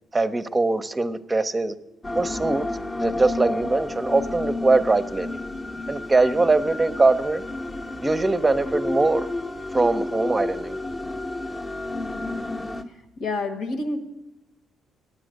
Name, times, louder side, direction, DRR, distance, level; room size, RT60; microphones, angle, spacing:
voice 1, 0.1-1.7 2.1-2.6 3.0-5.3 5.9-7.4 8.0-9.3 9.7-10.8, right 3 dB, 20° right, 11 dB, 0.6 m, -22 dB
sound 1, 2.0-12.8, left 2 dB, 25° left, 0.7 m, -31 dB
voice 2, 12.9-14.0, left 2 dB, 85° left, 5 dB, 1.4 m, -29 dB
9.1 x 8.5 x 6.4 m, 0.98 s
cardioid pair, 90°, 0 cm